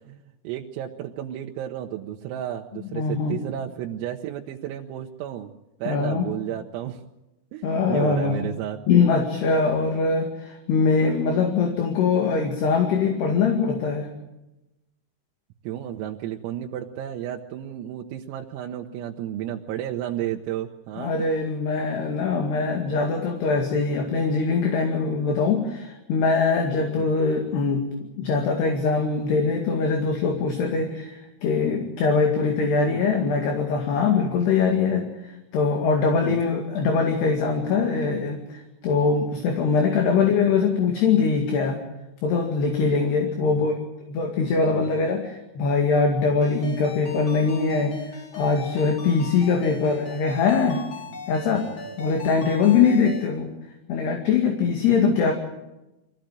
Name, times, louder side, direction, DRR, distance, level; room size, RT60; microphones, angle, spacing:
voice 1, 0.0-5.5 5.8-7.0 7.5-8.8 15.6-21.3 26.8-27.1 30.6-30.8 33.0-33.1 36.3-36.4 43.5-43.7 44.7-44.9 49.7-49.8 51.2-51.3, right 11 dB, 85° right, 1 dB, 3.8 m, -33 dB
voice 2, 2.8-3.4 5.9-6.3 7.6-8.4 8.9-14.1 21.0-41.8 42.2-43.7 44.1-50.8 51.3-51.7 52.0-53.5 53.9-55.3, left 5 dB, 60° left, 3 dB, 4.0 m, -22 dB
Ringtone, 46.4-53.3, left 5 dB, 40° left, 1.9 m, -40 dB
24.5 x 16.5 x 9.1 m, 0.97 s
omnidirectional pair, 6.0 m